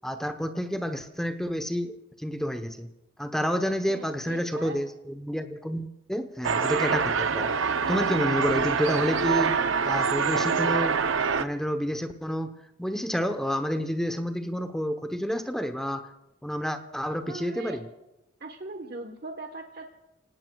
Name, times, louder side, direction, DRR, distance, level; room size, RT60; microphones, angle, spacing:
voice 1, 0.0-2.9 3.2-7.5 7.9-9.6 9.8-11.0 11.4-12.5 12.8-16.1 16.4-17.9, equal, 5° left, 6 dB, 0.9 m, -29 dB
voice 2, 3.9-4.8 17.3-17.8 18.4-19.9, right 3 dB, 50° right, 4 dB, 1.1 m, -40 dB
sound 1, 6.4-11.4, right 5 dB, 80° right, 0.6 m, -25 dB
30.0 x 18.5 x 2.3 m, 0.94 s
head